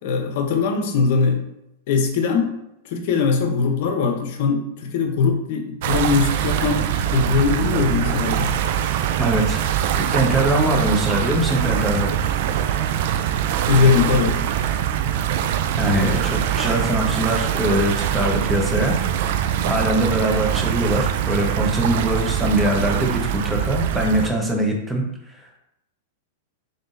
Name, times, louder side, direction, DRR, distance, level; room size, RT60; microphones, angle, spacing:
voice 1, 0.0-1.4 1.9-2.5 2.8-8.5 13.7-14.4, left 5 dB, 60° left, 4 dB, 0.8 m, -20 dB
sound 1, 5.8-24.3, right 10 dB, 60° right, 0.3 m, -23 dB
voice 2, 9.2-9.7 10.1-12.2 15.8-18.9 19.6-25.0 25.4-25.6, right 1 dB, 5° right, 0 dB, 1.0 m, -22 dB
3.7 x 3.6 x 2.6 m, 0.83 s
hypercardioid pair, 115°, 0 cm